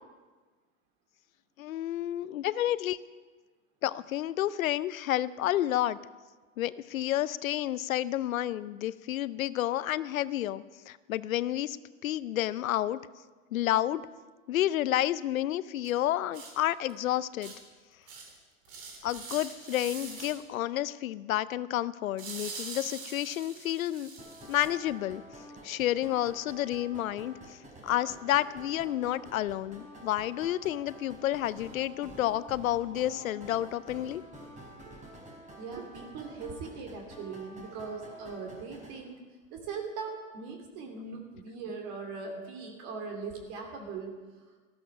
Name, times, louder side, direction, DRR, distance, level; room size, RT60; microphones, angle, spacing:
voice 1, 1.6-3.0 3.8-6.0 6.6-11.8 12.0-13.0 13.5-14.0 14.5-17.5 19.0-24.1 24.5-25.2 25.6-27.6 27.8-34.2, left 13 dB, 90° left, 17 dB, 0.6 m, -30 dB
sound 1, 15.8-15.9 16.3-16.5 16.9-17.0 17.4-17.6 18.1-18.4 18.6-20.3 22.2-24.7, right 4 dB, 70° right, 3.5 m, -43 dB
sound 2, 24.2-38.9, right 1 dB, 20° right, 4.5 m, -49 dB
voice 2, 35.6-39.2 39.5-44.1, right 4 dB, 50° right, 3 dB, 2.8 m, -40 dB
13.5 x 12.5 x 5.9 m, 1.4 s
hypercardioid pair, 110°, 40 cm